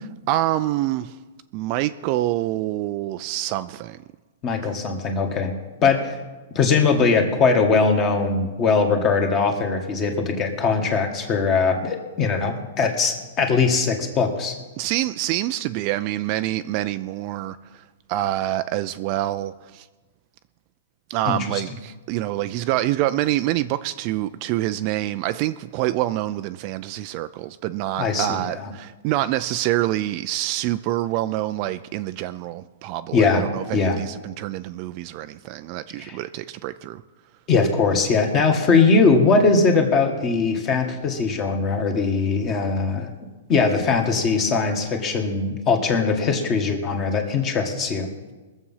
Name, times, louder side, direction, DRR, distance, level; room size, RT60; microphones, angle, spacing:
voice 1, 0.3-1.2 1.5-4.0 4.6-4.8 14.8-17.8 18.1-19.9 21.1-37.0, right 14 dB, 35° right, 0.4 m, -26 dB
voice 2, 4.4-5.5 5.8-6.1 6.5-14.5 21.2-21.6 28.0-28.4 33.1-33.4 33.7-34.0 36.0-36.2 37.5-43.1 43.5-48.1, left 4 dB, 25° left, 1.7 m, -20 dB
21.5 x 7.3 x 5.7 m
hypercardioid pair, 155°, 0 cm